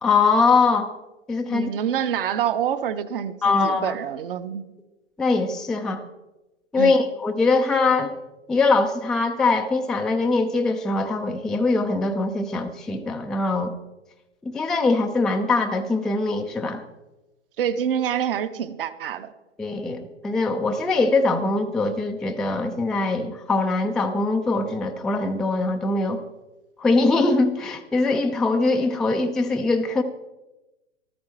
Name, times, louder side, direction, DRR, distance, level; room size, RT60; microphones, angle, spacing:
voice 1, 0.0-0.9 1.3-1.7 3.4-3.9 5.2-6.0 6.7-8.1 8.5-13.7 14.4-16.8 19.6-26.2 26.8-30.0, left 3 dB, ahead, 4 dB, 0.4 m, -22 dB
voice 2, 1.5-4.6 6.8-7.0 17.6-19.3, right 9 dB, 50° right, 10 dB, 1.0 m, -26 dB
14.0 x 13.5 x 4.4 m, 1.0 s
figure-of-eight pair, 100°, 34 cm